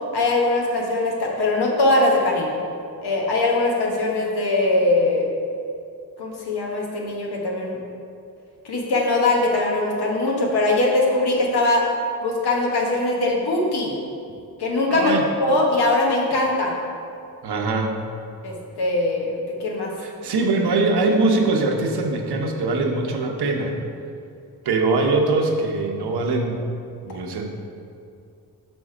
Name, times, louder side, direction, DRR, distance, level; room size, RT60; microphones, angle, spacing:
voice 1, 0.1-2.5 3.0-5.3 6.2-7.8 8.6-11.9 12.2-13.9 14.6-15.1 15.4-16.7 18.4-19.9, left 2 dB, 90° left, -1 dB, 1.3 m, -21 dB
voice 2, 14.9-15.2 17.4-18.0 20.0-23.8 24.6-26.6 27.0-27.5, right 3 dB, 90° right, 2 dB, 0.9 m, -22 dB
6.2 x 5.4 x 4.9 m, 2.5 s
wide cardioid pair, 110°, 38 cm